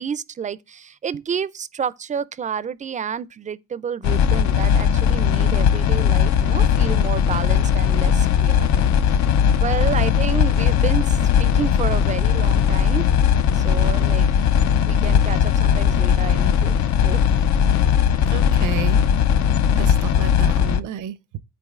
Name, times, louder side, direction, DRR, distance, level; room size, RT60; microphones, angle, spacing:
voice 1, 0.0-8.7 9.1-9.3 9.6-13.1 13.5-14.5 14.9-16.8 17.0-17.2, right 7 dB, 25° right, 0.4 m, -30 dB
sound 1, 4.0-20.8, left 8 dB, 65° left, 0.5 m, -18 dB
voice 2, 18.3-19.0 19.7-21.4, right 9 dB, 85° right, 0.6 m, -31 dB
11.5 x 3.9 x 2.4 m
cardioid pair, 90°, 30 cm